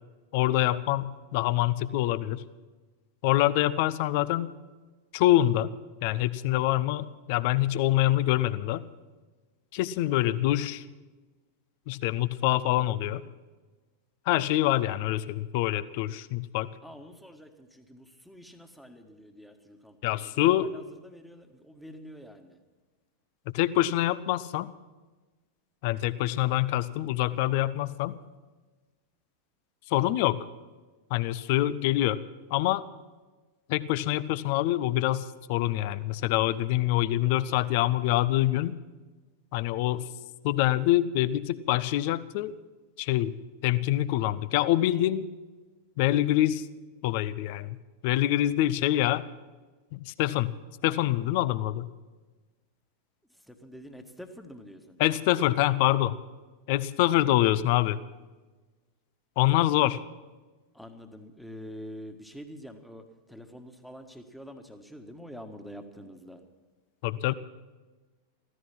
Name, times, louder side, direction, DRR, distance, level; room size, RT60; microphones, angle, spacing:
voice 1, 0.3-2.4 3.2-4.5 5.1-5.7 6.0-8.8 9.7-10.8 11.9-13.2 14.3-16.7 20.0-20.7 23.5-24.7 25.8-28.1 29.9-30.4 31.1-32.2 32.5-32.8 33.7-38.7 39.5-40.1 40.4-42.5 43.0-43.3 43.6-45.3 46.0-46.7 47.0-47.8 48.0-49.2 49.9-50.6 50.8-51.9 55.0-56.2 56.7-58.0 59.4-60.0 67.0-67.3, left 14 dB, 50° left, 16 dB, 0.7 m, -25 dB
voice 2, 16.8-20.4 20.7-22.6 53.5-55.0 60.7-63.0 63.3-66.4, equal, ahead, 6 dB, 1.6 m, -46 dB
15.5 x 14.5 x 6.0 m, 1.3 s
figure-of-eight pair, 90°, 0 cm